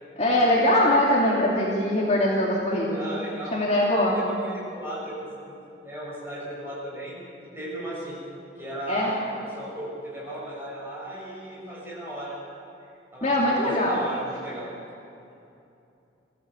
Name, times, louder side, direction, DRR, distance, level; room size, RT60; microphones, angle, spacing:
voice 1, 0.2-3.0 3.5-4.2 8.9-9.1 13.2-14.0, left 1 dB, 35° left, -4 dB, 2.7 m, -22 dB
voice 2, 2.9-3.6 4.1-5.6 5.8-7.2 7.4-8.2 8.6-12.4 13.1-14.7, right 1 dB, 10° right, -6 dB, 7.0 m, -36 dB
22.5 x 15.0 x 8.3 m, 2.7 s
head